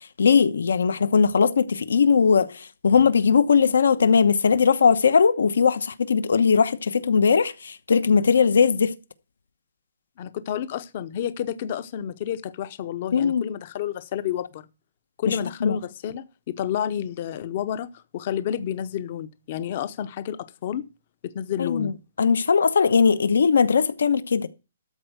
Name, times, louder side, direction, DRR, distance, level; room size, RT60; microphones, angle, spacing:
voice 1, 0.2-8.9 13.1-13.4 15.3-15.8 21.6-21.9 22.2-24.5, left 6 dB, 80° left, 1.0 m, -19 dB
voice 2, 10.2-14.7 15.2-20.9 21.2-21.9, left 10 dB, 30° left, 0.6 m, -30 dB
13.0 x 4.5 x 7.9 m
hypercardioid pair, 175°, 0 cm